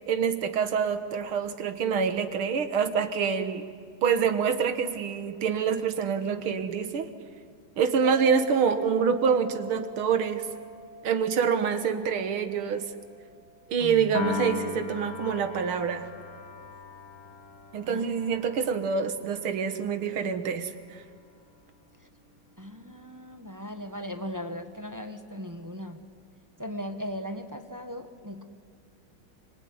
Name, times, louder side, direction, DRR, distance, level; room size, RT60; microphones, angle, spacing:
voice 1, 0.1-3.6 4.0-7.1 7.8-10.5 11.0-12.8 13.7-16.1 17.7-20.7, right 6 dB, 90° right, 8 dB, 2.4 m, -26 dB
sound 1, 8.0-15.1, right 4 dB, 55° left, 4.2 m, -47 dB
voice 2, 13.8-14.2 17.8-18.1 22.0-22.1 22.6-26.0 26.6-28.5, equal, 10° right, 7 dB, 1.2 m, -38 dB
Piano, 14.1-20.5, left 5 dB, 75° left, 2.9 m, -39 dB
25.0 x 24.5 x 9.7 m, 2.3 s
omnidirectional pair, 2.3 m